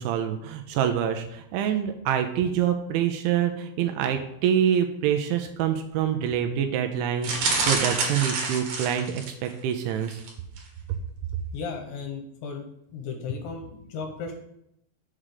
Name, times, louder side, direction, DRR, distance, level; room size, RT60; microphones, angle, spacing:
voice 1, 0.0-10.2, right 9 dB, 80° right, 6 dB, 2.8 m, -26 dB
sound 1, 7.2-9.5 10.0-10.3 10.6-10.7, right 3 dB, 65° right, 2.5 m, -27 dB
voice 2, 11.5-12.6 12.9-14.3, left 5 dB, 75° left, 3 dB, 3.0 m, -35 dB
7.4 x 5.0 x 6.6 m, 0.78 s
omnidirectional pair, 5.7 m